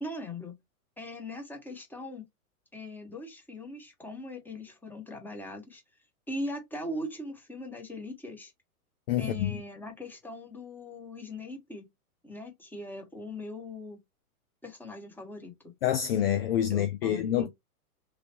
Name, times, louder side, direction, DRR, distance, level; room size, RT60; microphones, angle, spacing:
voice 1, 0.0-0.6 1.0-2.2 2.7-5.8 6.3-8.5 9.2-11.9 12.2-14.0 14.6-15.8 16.7-17.5, left 1 dB, 5° left, 1.1 m, -40 dB
voice 2, 9.1-9.6 15.8-17.5, left 10 dB, 45° left, 0.4 m, -27 dB
3.2 x 2.3 x 2.7 m
figure-of-eight pair, 105°, 45 cm